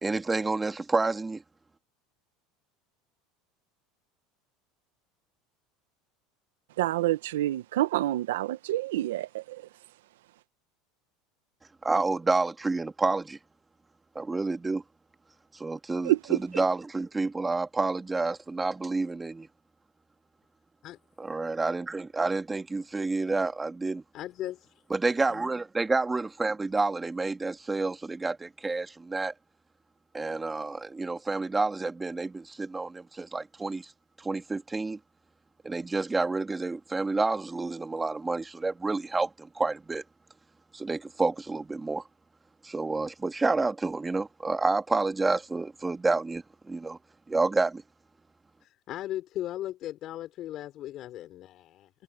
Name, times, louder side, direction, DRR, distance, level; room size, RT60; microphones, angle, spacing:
voice 1, 0.0-1.4 11.8-13.4 14.2-14.8 15.5-19.5 21.2-24.0 24.9-29.3 30.1-33.9 34.2-35.0 35.6-40.0 40.7-42.0 42.6-47.0 47.3-47.8, right 3 dB, 15° right, 2.3 m, -29 dB
voice 2, 6.8-9.6 16.0-16.4, right 15 dB, 85° right, 1.4 m, -27 dB
voice 3, 24.1-24.7 25.3-25.5 48.6-51.9, left 13 dB, 50° left, 4.2 m, -37 dB
supercardioid pair, 100°, 0 cm